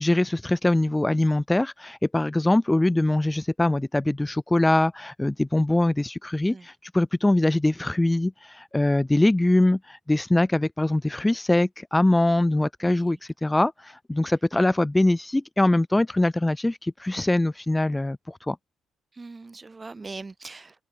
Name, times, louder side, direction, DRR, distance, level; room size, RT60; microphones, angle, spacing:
voice 1, 0.0-18.6, left 1 dB, 10° left, 6.3 m, -23 dB
voice 2, 12.8-13.2 19.1-20.9, right 3 dB, 15° right, 6.8 m, -41 dB
cardioid pair, 145°, 0 cm